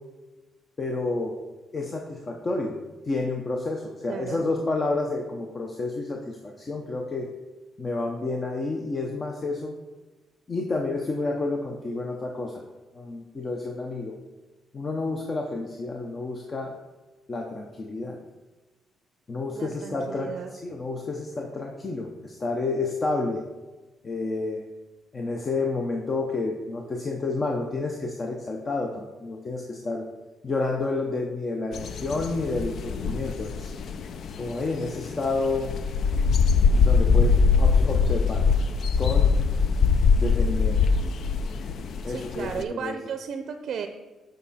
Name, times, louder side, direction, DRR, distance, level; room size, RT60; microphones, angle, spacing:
voice 1, 0.8-1.4 1.7-2.8 3.0-7.3 7.8-9.7 10.5-12.6 12.9-14.1 14.7-16.8 17.3-18.2 19.3-20.3 20.6-23.4 24.0-24.7 25.1-30.0 30.4-33.7 34.4-35.8 36.8-38.4 39.0-39.3 40.2-40.8 42.0-42.9, left 3 dB, 35° left, 1 dB, 0.8 m, -30 dB
voice 2, 4.1-4.4 19.5-20.5 42.1-43.9, right 6 dB, 65° right, 7 dB, 0.5 m, -34 dB
sound 1, 31.7-42.6, left 5 dB, 65° left, 0.5 m, -23 dB
7.9 x 5.2 x 4.2 m, 1.2 s
cardioid pair, 90°, 0 cm